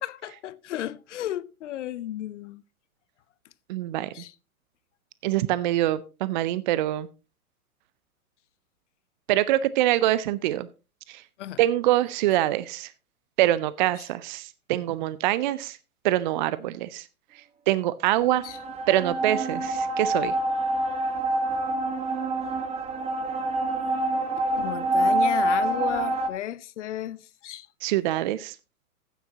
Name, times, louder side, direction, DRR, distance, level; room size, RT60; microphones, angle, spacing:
voice 1, 0.0-2.6 4.1-4.3 11.4-11.6 18.4-18.6 24.6-27.7, left 12 dB, 55° left, 0.7 m, -33 dB
voice 2, 3.7-4.1 5.2-7.1 9.3-10.7 11.1-11.2 11.6-12.9 13.4-15.8 16.0-17.1 17.7-18.4 18.9-20.3 27.8-28.6, right 14 dB, 35° right, 0.5 m, -24 dB
sound 1, 18.2-26.3, right 1 dB, 15° right, 1.5 m, -26 dB
14.5 x 9.2 x 2.8 m
figure-of-eight pair, 110°, 43 cm